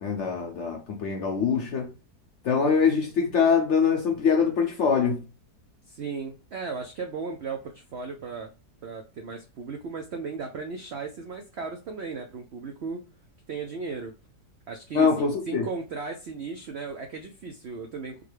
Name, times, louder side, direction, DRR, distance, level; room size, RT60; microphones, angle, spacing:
voice 1, 0.0-1.9 2.4-5.2 14.9-15.6, left 6 dB, 65° left, 0.7 m, -23 dB
voice 2, 5.9-8.5 8.8-13.0 13.5-14.1 14.7-18.2, right 4 dB, 85° right, 0.5 m, -36 dB
3.8 x 2.2 x 3.1 m
omnidirectional pair, 1.8 m